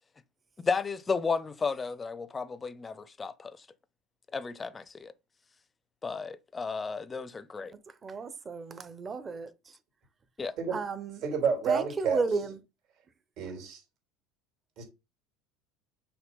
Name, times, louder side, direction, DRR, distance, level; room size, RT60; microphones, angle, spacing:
voice 1, 0.6-3.7 4.3-5.1 6.0-7.7 10.4-10.5, left 4 dB, 20° left, 0.5 m, -33 dB
voice 2, 8.0-9.5 10.7-11.2 11.7-12.6, right 4 dB, 25° right, 0.8 m, -33 dB
voice 3, 11.2-12.2 13.4-13.8 14.8-14.9, right 6 dB, 65° right, 3.3 m, -29 dB
6.3 x 3.1 x 5.4 m
supercardioid pair, 110°, 0 cm